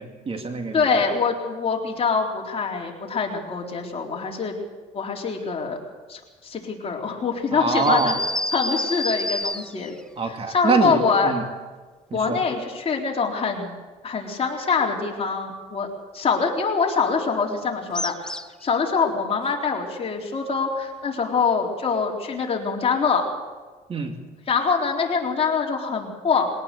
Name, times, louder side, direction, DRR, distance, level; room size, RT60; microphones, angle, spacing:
voice 1, 0.0-0.9 7.5-8.2 10.2-11.4 12.1-12.4 23.9-24.1, right 4 dB, 35° right, 4 dB, 2.5 m, -24 dB
voice 2, 0.7-4.6 4.9-5.8 6.1-8.2 8.5-9.9 10.5-11.3 12.1-13.7 14.0-18.3 18.6-23.2 24.5-26.6, left 5 dB, 35° left, 0 dB, 3.9 m, -24 dB
sound 1, 7.7-10.0 17.9-18.7, left 1 dB, 5° left, 0.8 m, -28 dB
22.0 x 18.0 x 6.9 m, 1.4 s
cardioid pair, 110°, 17 cm